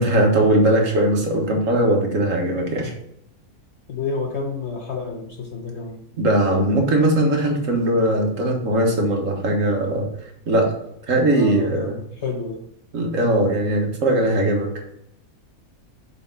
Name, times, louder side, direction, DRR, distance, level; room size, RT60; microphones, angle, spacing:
voice 1, 0.0-2.9 6.2-10.1 10.5-10.7 11.1-12.0 12.9-14.7, right 1 dB, 60° right, 1 dB, 1.8 m, -19 dB
voice 2, 3.9-6.0 11.3-12.6, left 4 dB, 55° left, 2 dB, 1.0 m, -29 dB
6.8 x 4.3 x 3.9 m, 0.78 s
omnidirectional pair, 1.5 m